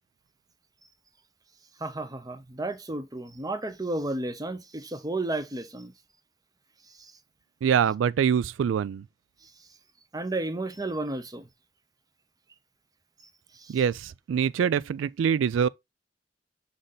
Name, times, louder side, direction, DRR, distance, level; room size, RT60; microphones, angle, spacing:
voice 1, 1.8-5.9 7.0-7.1 10.1-11.5 13.5-13.8, right 2 dB, 20° right, 0.8 m, -32 dB
voice 2, 7.6-9.0 13.7-15.7, right 7 dB, 85° right, 0.3 m, -24 dB
6.5 x 4.0 x 3.9 m
head